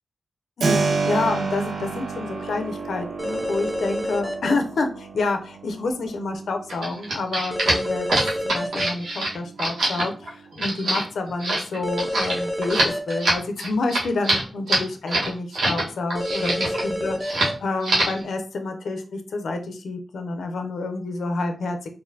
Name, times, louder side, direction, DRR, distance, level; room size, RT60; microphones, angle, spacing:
voice 1, 0.6-8.1 8.4-21.9, left 3 dB, 85° left, 5 dB, 0.5 m, -28 dB
Keyboard (musical), 0.6-11.3, right 4 dB, 65° right, 0.5 m, -31 dB
sound 1, 3.2-4.5 7.5-8.9 11.8-13.2 16.1-17.5, equal, 10° left, 0.6 m, -28 dB
sound 2, 6.7-15.8 16.1-16.9 17.2-17.5 17.8-18.2, right 1 dB, 90° right, 1.2 m, -24 dB
4.0 x 2.6 x 2.7 m, 0.38 s
wide cardioid pair, 90°, 0 cm